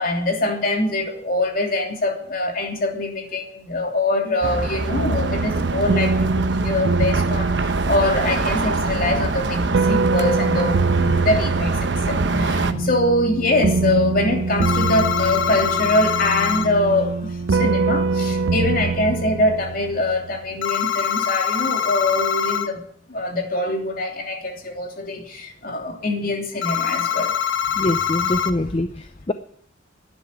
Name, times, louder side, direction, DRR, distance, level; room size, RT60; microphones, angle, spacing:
voice 1, 0.0-22.8 23.1-27.3, left 2 dB, 50° left, 3 dB, 3.1 m, -23 dB
sound 1, 4.4-12.7, right 3 dB, 65° right, 1.0 m, -25 dB
sound 2, 4.9-20.4, right 4 dB, 85° right, 0.5 m, -24 dB
voice 2, 12.0-12.9 27.8-29.3, left 1 dB, 30° left, 10 dB, 0.6 m, -25 dB
sound 3, 14.6-16.7 20.6-22.7 26.6-28.5, left 8 dB, 90° left, 1.1 m, -23 dB
11.5 x 10.0 x 9.9 m, 0.64 s
head